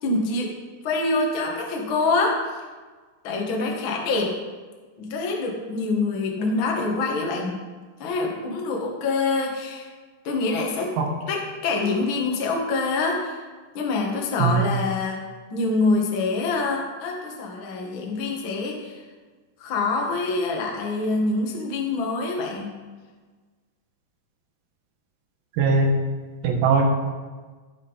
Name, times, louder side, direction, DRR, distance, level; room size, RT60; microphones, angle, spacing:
voice 1, 0.0-0.5 0.8-2.4 3.2-4.3 5.0-7.6 8.0-9.9 10.2-10.9 11.3-13.4 13.7-15.2 15.5-19.0 19.6-22.7, left 3 dB, 65° left, -1 dB, 1.2 m, -25 dB
voice 2, 25.6-26.0 26.4-26.8, right 4 dB, 65° right, 1 dB, 2.8 m, -19 dB
15.5 x 5.9 x 4.1 m, 1.4 s
omnidirectional pair, 4.9 m